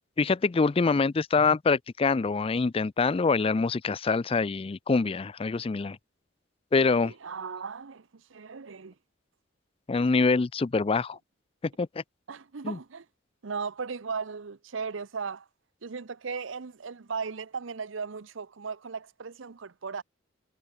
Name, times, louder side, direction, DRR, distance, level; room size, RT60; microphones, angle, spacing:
voice 1, 0.2-6.0 6.7-7.1 9.9-11.2 11.8-11.9 12.6-12.8, left 4 dB, 30° left, 0.4 m, -25 dB
voice 2, 6.8-8.9 12.3-13.1 13.4-15.5 15.8-20.0, right 5 dB, 75° right, 0.7 m, -37 dB
head